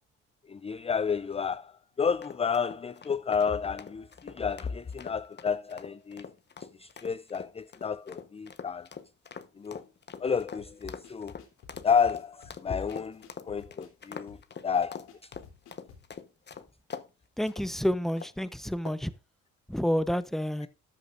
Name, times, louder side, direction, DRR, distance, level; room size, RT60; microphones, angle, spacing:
voice 1, 0.5-6.3 6.8-8.9 9.6-9.8 10.2-11.3 11.8-14.4 14.6-15.3, left 6 dB, 20° left, 0.5 m, -31 dB
sound 1, 2.2-17.1 17.5-17.7 18.2-18.4 18.9-19.2, left 6 dB, 35° left, 1.2 m, -44 dB
sound 2, 10.6-16.1, left 6 dB, 90° left, 3.4 m, -54 dB
voice 2, 17.4-19.1 19.7-20.7, equal, ahead, 0.9 m, -29 dB
13.5 x 9.6 x 2.6 m
cardioid pair, 90°, 30 cm